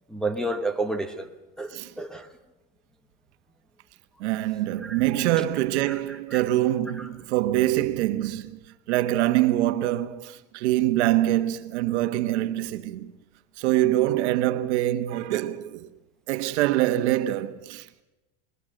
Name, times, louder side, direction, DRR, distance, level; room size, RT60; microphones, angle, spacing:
voice 1, 0.1-1.3 1.6-2.3 4.8-5.0 5.9-6.4 7.0-7.1, right 2 dB, ahead, 1.0 m, -31 dB
voice 2, 4.2-8.6 8.9-13.1 13.6-15.9 16.3-18.0, right 14 dB, 65° right, 1.5 m, -24 dB
21.5 x 20.0 x 7.7 m
supercardioid pair, 170°, 37 cm